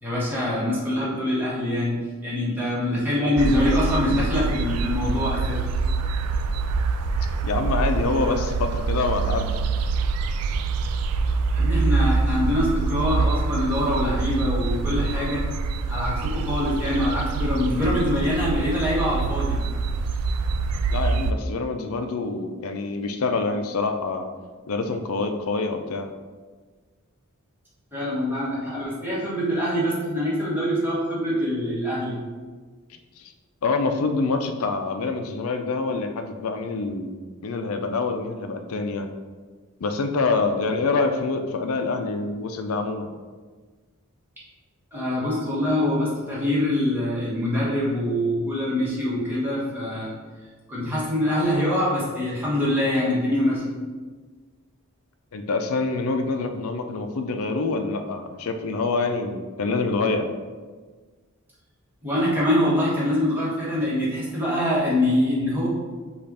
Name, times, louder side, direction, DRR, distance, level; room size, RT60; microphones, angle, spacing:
voice 1, 0.0-5.7 11.5-15.4 15.9-19.6 27.9-32.2 44.9-50.1 50.7-53.8 62.0-65.7, left 1 dB, 10° right, -8 dB, 1.3 m, -24 dB
sound 1, 3.4-21.3, right 4 dB, 90° right, 0.3 m, -25 dB
voice 2, 7.4-9.6 20.9-24.3 24.7-26.1 33.2-33.3 33.6-39.1 39.8-43.1 55.3-60.3, left 3 dB, 70° left, 6 dB, 0.5 m, -26 dB
5.3 x 2.4 x 4.1 m, 1.4 s
head